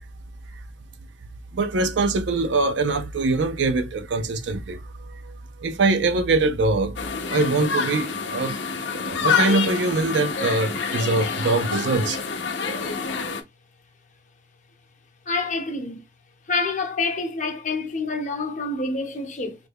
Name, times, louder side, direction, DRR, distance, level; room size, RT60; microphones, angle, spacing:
voice 1, 1.5-7.0 7.3-8.6 8.9-12.2, right 3 dB, 80° right, 0.5 m, -23 dB
sound 1, 7.0-13.4, left 5 dB, 80° left, 0.6 m, -27 dB
voice 2, 15.3-16.0 16.5-19.6, left 3 dB, 45° left, 0.7 m, -27 dB
3.2 x 2.2 x 3.3 m
head